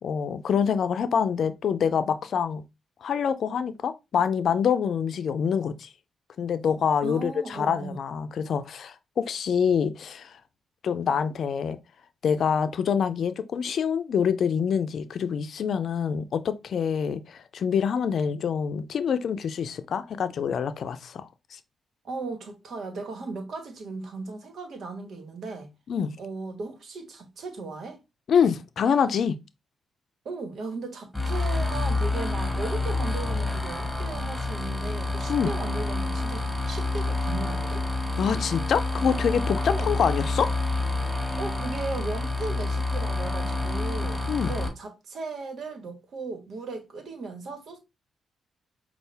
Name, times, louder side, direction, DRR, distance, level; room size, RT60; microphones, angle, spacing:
voice 1, 0.0-2.6 3.0-5.9 6.4-10.3 10.8-11.8 12.2-21.6 25.9-26.2 28.3-29.4 35.3-35.5 38.2-40.6 44.3-44.6, left 7 dB, 65° left, 0.5 m, -26 dB
voice 2, 7.0-8.0 22.0-25.7 26.2-28.0 30.2-37.8 39.7-39.9 41.4-47.8, right 3 dB, 65° right, 1.3 m, -36 dB
sound 1, 31.1-44.7, left 2 dB, 5° left, 1.9 m, -28 dB
5.5 x 2.4 x 3.4 m
supercardioid pair, 55°, 0 cm